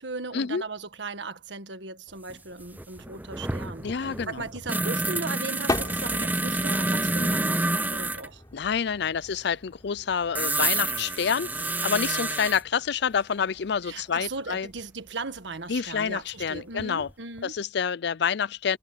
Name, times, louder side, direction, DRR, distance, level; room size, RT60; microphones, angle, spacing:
voice 1, 0.0-8.4 13.8-17.5, right 3 dB, 80° right, 1.6 m, -37 dB
sound 1, 2.3-2.4 2.6-8.3 10.3-12.6 14.8-14.9 16.4-17.1 17.4-17.5, right 2 dB, 10° right, 0.6 m, -28 dB
sound 2, 3.2-4.1 5.1-5.2 5.4-16.7, left 2 dB, 20° left, 4.6 m, -40 dB
voice 2, 3.8-4.4 8.5-14.7 15.7-17.1 17.4-18.8, left 6 dB, 65° left, 0.5 m, -28 dB
head